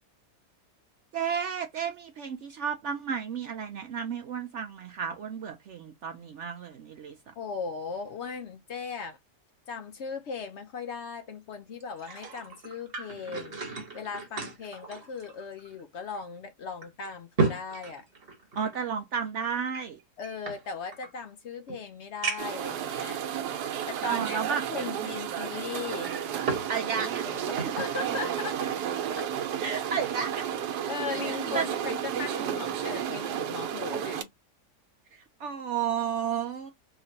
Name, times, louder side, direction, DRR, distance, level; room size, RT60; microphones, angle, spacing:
voice 1, 1.1-7.1 18.6-20.0 24.1-24.6 26.7-27.7 29.6-30.5 31.3-31.7 35.1-36.7, right 7 dB, 70° right, 0.7 m, -32 dB
voice 2, 7.4-9.2 9.7-18.1 20.2-23.2 23.9-26.2 27.0-28.8 29.1-29.3 30.9-34.3, left 5 dB, 65° left, 0.7 m, -38 dB
sound 1, 11.8-15.8 16.1-16.2 16.8-18.8 19.7-21.1 21.7-21.8 22.2-22.7 23.4-23.5 25.8-26.7 27.1-27.9 28.4-28.6, right 4 dB, 40° right, 1.2 m, -34 dB
sound 2, 22.4-34.2, right 9 dB, 85° right, 1.3 m, -32 dB
3.3 x 2.9 x 2.7 m
omnidirectional pair, 1.7 m